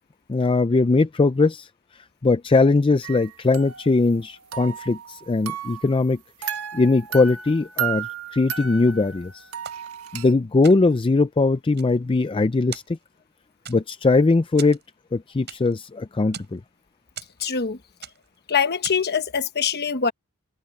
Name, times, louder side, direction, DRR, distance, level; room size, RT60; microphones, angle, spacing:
voice 1, 0.3-1.7 1.9-9.5 10.1-13.0 13.7-14.8 15.1-16.6, left 3 dB, 25° left, 0.4 m, -20 dB
sound 1, 3.0-4.3 4.5-6.0 6.4-10.3, right 9 dB, 75° right, 1.5 m, -34 dB
sound 2, 9.6-10.3 10.6-11.1 11.6-12.4 12.7-13.3 13.7-14.1 14.6-15.9 16.1-16.6 17.2-17.7 18.0-18.4 18.8-19.2, right 8 dB, 50° right, 5.6 m, -41 dB
voice 2, 17.4-17.8 18.5-20.1, left 6 dB, 45° left, 1.2 m, -23 dB
head